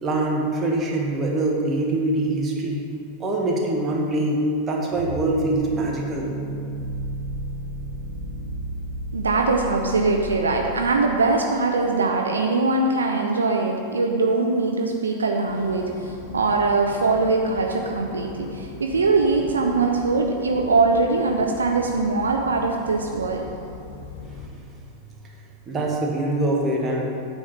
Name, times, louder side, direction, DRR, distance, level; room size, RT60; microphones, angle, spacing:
voice 1, 0.0-2.8 3.2-6.3 24.3-24.9 25.7-27.1, right 2 dB, 20° right, -1 dB, 1.4 m, -24 dB
sound 1, 4.9-12.1, right 1 dB, 55° right, 1.0 m, -33 dB
voice 2, 9.1-23.4, right 3 dB, 70° right, 2 dB, 0.6 m, -22 dB
sound 2, 15.4-24.5, left 4 dB, 45° left, 0.7 m, -40 dB
8.8 x 4.5 x 5.9 m, 2.4 s
figure-of-eight pair, 90°, 0 cm